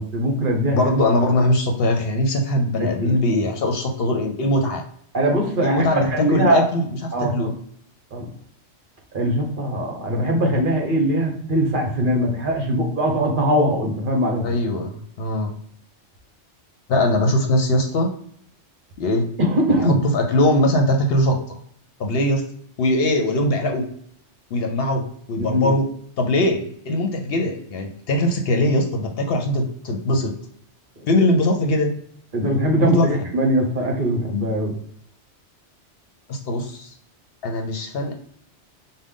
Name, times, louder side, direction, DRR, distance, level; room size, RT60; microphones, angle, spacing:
voice 1, 0.0-0.8 2.8-3.2 5.1-6.6 7.1-7.3 8.1-8.3 9.1-14.5 19.4-20.0 25.4-25.8 31.0-31.1 32.3-34.8, equal, 50° right, 1 dB, 1.0 m, -21 dB
voice 2, 0.7-4.8 5.6-6.8 7.2-7.5 14.4-15.5 16.9-18.1 19.0-19.3 19.8-21.6 22.0-22.4 22.8-23.8 24.5-25.8 26.2-30.3 31.1-31.9 32.8-33.2 36.3-36.9 37.4-38.1, left 1 dB, 60° left, 3 dB, 0.8 m, -21 dB
5.0 x 2.2 x 3.6 m, 0.65 s
omnidirectional pair, 1.2 m